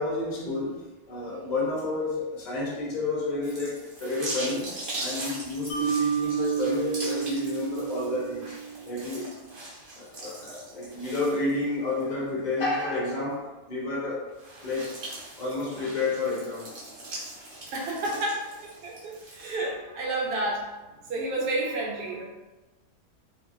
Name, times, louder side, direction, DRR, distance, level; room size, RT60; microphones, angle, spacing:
voice 1, 0.0-8.6 8.8-9.3 9.9-14.3 14.6-14.9 15.4-16.7, left 2 dB, 50° left, -4 dB, 0.5 m, -30 dB
sound 1, 3.4-12.0 12.5-12.6 14.3-19.5, right 1 dB, 45° right, 0.7 m, -40 dB
Mallet percussion, 5.7-9.0, right 7 dB, 65° left, 0.9 m, -30 dB
voice 2, 17.6-20.7 21.0-22.2, right 2 dB, 80° right, -2 dB, 1.2 m, -30 dB
2.7 x 2.3 x 2.5 m, 1.1 s
omnidirectional pair, 1.7 m